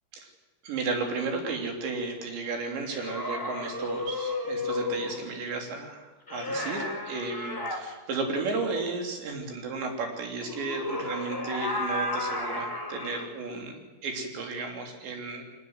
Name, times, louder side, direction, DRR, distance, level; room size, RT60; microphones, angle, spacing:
voice 1, 0.6-13.8 14.0-15.4, right 3 dB, 65° right, 3 dB, 5.3 m, -33 dB
sound 1, 2.8-5.2 6.3-7.8 10.4-13.3, left 2 dB, 5° left, 2.4 m, -33 dB
23.5 x 19.0 x 8.0 m, 1.2 s
omnidirectional pair, 5.7 m